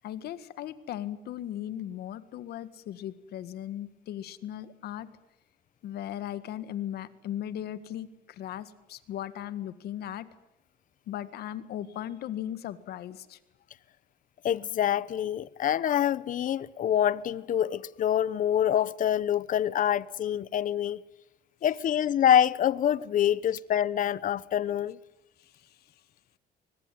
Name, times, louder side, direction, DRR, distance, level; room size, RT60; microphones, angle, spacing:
voice 1, 0.0-5.1 5.8-10.3 11.1-13.4, left 11 dB, 70° left, 1.8 m, -37 dB
voice 2, 14.4-21.0 21.6-25.0, left 10 dB, 50° left, 0.9 m, -26 dB
24.5 x 20.0 x 9.4 m
cardioid pair, 110°, 17 cm